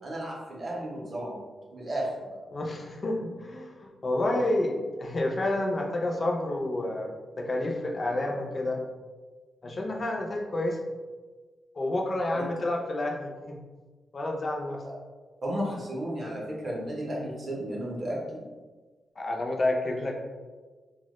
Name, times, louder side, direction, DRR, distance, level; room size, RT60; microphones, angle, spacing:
voice 1, 0.0-1.4 1.7-2.3 12.3-12.4 15.4-18.4, right 1 dB, 40° right, -4 dB, 0.5 m, -33 dB
voice 2, 2.5-7.1 7.4-8.8 9.6-10.8 11.8-13.6 14.1-14.8 19.2-20.2, left 1 dB, 35° left, 1 dB, 0.3 m, -29 dB
2.1 x 2.0 x 2.8 m, 1.3 s
wide cardioid pair, 145°, 0 cm